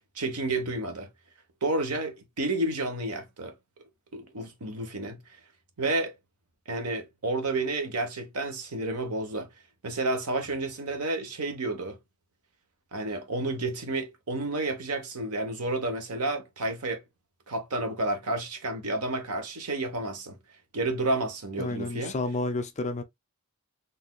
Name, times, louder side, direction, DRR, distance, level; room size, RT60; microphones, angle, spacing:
voice 1, 0.1-1.1 1.6-3.5 4.1-5.2 5.8-6.1 6.7-9.5 9.8-12.0 12.9-17.0 17.5-20.4 20.7-22.1, right 2 dB, 85° right, 1.0 m, -30 dB
voice 2, 21.6-23.0, left 2 dB, 30° left, 0.5 m, -30 dB
4.1 x 2.6 x 2.2 m
head